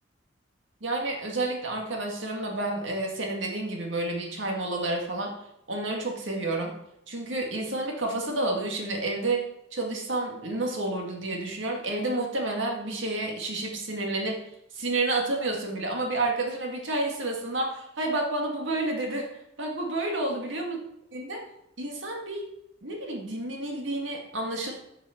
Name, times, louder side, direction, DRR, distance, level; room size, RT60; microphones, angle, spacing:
voice 1, 0.8-5.3 5.7-6.7 7.1-14.4 14.8-19.3 19.6-20.8 21.1-21.4 21.8-22.5 22.8-24.7, right 2 dB, 70° right, 1 dB, 2.0 m, -30 dB
10.0 x 6.3 x 4.4 m, 0.80 s
head